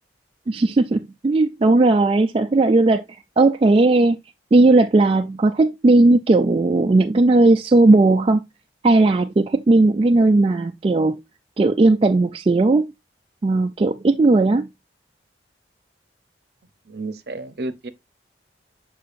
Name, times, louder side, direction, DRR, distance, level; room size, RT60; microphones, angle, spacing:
voice 1, 0.5-3.0 3.4-4.2 4.5-8.4 8.8-11.2 11.6-12.9 13.4-14.7, right 2 dB, 30° right, 0.3 m, -16 dB
voice 2, 16.9-17.9, right 2 dB, 60° right, 0.7 m, -31 dB
6.8 x 5.5 x 2.5 m
head